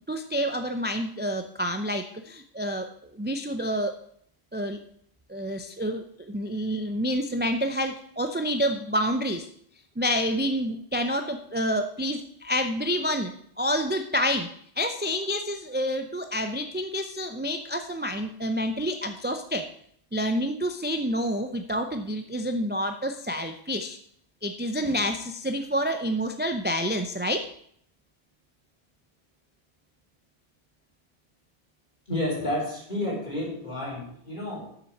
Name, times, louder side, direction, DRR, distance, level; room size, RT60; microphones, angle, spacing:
voice 1, 0.1-4.0 4.5-4.8 5.3-9.5 10.0-14.5 14.8-19.7 20.1-24.0 24.4-27.5, equal, 15° right, 6 dB, 0.4 m, -28 dB
voice 2, 32.1-34.8, left 1 dB, 45° left, -3 dB, 3.9 m, -31 dB
7.2 x 6.8 x 6.5 m, 0.65 s
omnidirectional pair, 1.1 m